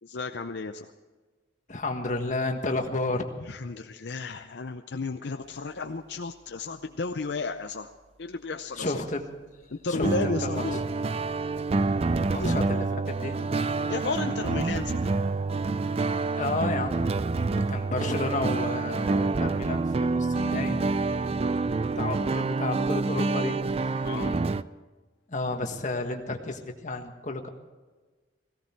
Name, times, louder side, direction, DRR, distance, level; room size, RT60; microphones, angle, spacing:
voice 1, 0.0-0.9 3.4-7.9 8.2-9.1 9.7-10.8 12.3-12.7 13.9-15.2 24.0-24.4, left 3 dB, 65° left, 7 dB, 0.6 m, -33 dB
voice 2, 1.7-3.2 8.8-9.3 9.9-10.8 12.3-13.5 16.4-17.1 17.7-20.8 22.0-24.1 25.3-27.5, left 2 dB, 40° left, 4 dB, 1.6 m, -32 dB
sound 1, 10.0-24.6, right 3 dB, 30° right, 0.4 m, -27 dB
17.5 x 17.0 x 4.5 m, 1.3 s
head